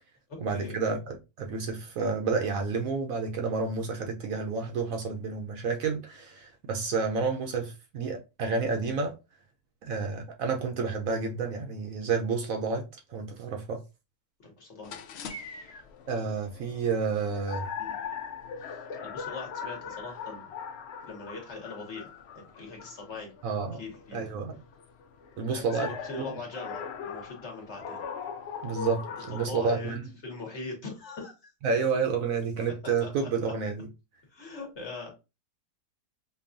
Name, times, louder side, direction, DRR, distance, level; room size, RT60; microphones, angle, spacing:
voice 1, 0.4-9.1 9.8-13.8 16.1-17.7 23.4-23.8 24.1-24.6 25.4-26.2 28.6-30.0 31.6-33.9, right 4 dB, 65° right, 1.0 m, -30 dB
voice 2, 14.4-15.8 17.2-17.3 17.8-18.0 18.7-20.5 21.1-23.3 23.8-24.3 25.5-28.0 29.2-29.9 30.2-31.5 32.8-33.3 34.3-35.1, left 3 dB, 50° left, 1.3 m, -41 dB
sound 1, 14.8-29.5, left 6 dB, 90° left, 0.5 m, -41 dB
5.2 x 2.3 x 2.5 m
omnidirectional pair, 1.7 m